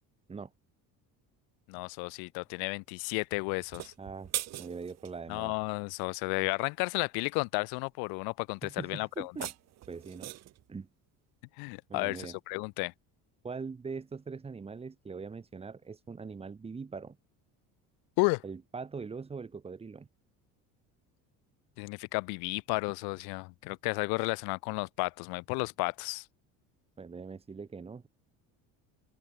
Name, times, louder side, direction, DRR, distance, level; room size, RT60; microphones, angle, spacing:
voice 1, 1.7-3.9 5.3-9.3 11.6-12.9 18.2-18.4 21.8-26.2, left 33 dB, 80° left, 1.8 m, -33 dB
sound 1, 3.6-5.2 9.1-10.6, right 14 dB, 45° right, 3.9 m, -40 dB
voice 2, 4.0-4.3 4.6-5.5 8.6-9.5 9.9-10.3 10.7-10.9 11.9-12.4 13.4-17.2 18.4-20.1 27.0-28.1, right 5 dB, 15° right, 6.2 m, -42 dB
cardioid pair, 170°, 36 cm